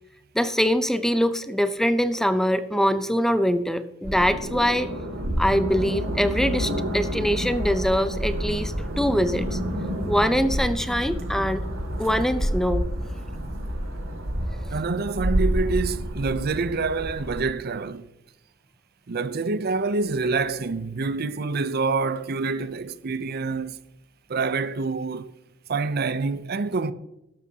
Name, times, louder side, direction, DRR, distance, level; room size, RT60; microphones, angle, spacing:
voice 1, 0.3-4.9 5.4-9.6 10.1-11.6 12.0-12.8, equal, ahead, 0.5 m, -23 dB
sound 1, 4.0-17.4, equal, 90° right, 2.4 m, -29 dB
voice 2, 14.7-18.1 19.1-23.8 24.3-25.3 25.7-26.9, right 4 dB, 50° right, 0.5 m, -26 dB
12.5 x 12.5 x 2.8 m
head